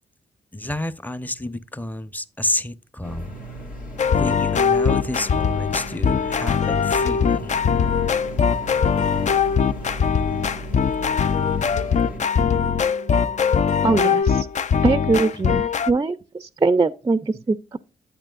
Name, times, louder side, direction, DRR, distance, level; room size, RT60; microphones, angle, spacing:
voice 1, 0.5-3.3 4.2-7.6, left 1 dB, 10° left, 0.7 m, -30 dB
sound 1, 3.0-12.2, equal, 65° left, 1.9 m, -37 dB
sound 2, 4.0-15.9, left 6 dB, 50° left, 0.5 m, -21 dB
sound 3, 4.2-14.2, left 1 dB, 90° left, 2.5 m, -41 dB
voice 2, 13.8-14.5 14.8-17.8, right 3 dB, 25° right, 0.4 m, -22 dB
8.9 x 8.6 x 2.4 m
supercardioid pair, 55°, 16 cm